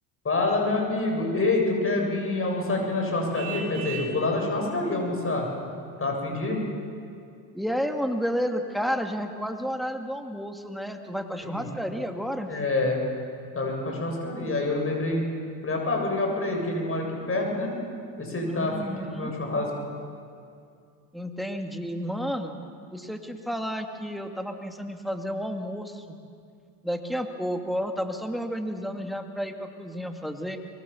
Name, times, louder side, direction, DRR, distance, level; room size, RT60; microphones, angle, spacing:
voice 1, 0.2-5.5 6.0-6.6 11.4-11.7 12.5-13.0 13.5-15.3 15.6-17.8 18.2-19.7, left 2 dB, 25° left, 1 dB, 7.8 m, -27 dB
Vehicle horn car horn honking, 3.3-4.2, right 7 dB, 45° right, 6.4 m, -37 dB
voice 2, 7.5-12.5 18.5-19.3 21.1-22.6 22.9-26.2 26.8-30.6, equal, ahead, 4 dB, 2.4 m, -31 dB
24.5 x 22.5 x 7.2 m, 2.4 s
supercardioid pair, 90°, 48 cm